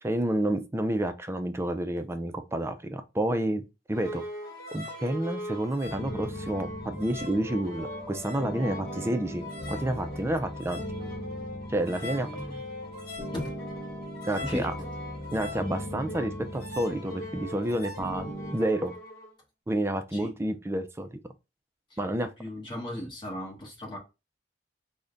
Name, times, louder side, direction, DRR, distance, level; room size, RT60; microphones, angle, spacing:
voice 1, 0.0-3.6 3.9-4.2 4.7-10.8 11.7-12.3 14.2-14.6 15.3-18.9 19.7-21.2 22.0-22.3, right 1 dB, 15° right, 0.4 m, -29 dB
sound 1, 3.9-19.3, left 1 dB, 55° left, 1.1 m, -41 dB
sound 2, 5.8-18.5, equal, 10° left, 0.9 m, -39 dB
voice 2, 12.0-12.6 13.3-13.5 14.4-14.9 20.1-20.3 21.9-24.0, left 1 dB, 25° left, 1.2 m, -37 dB
3.7 x 2.1 x 3.8 m
head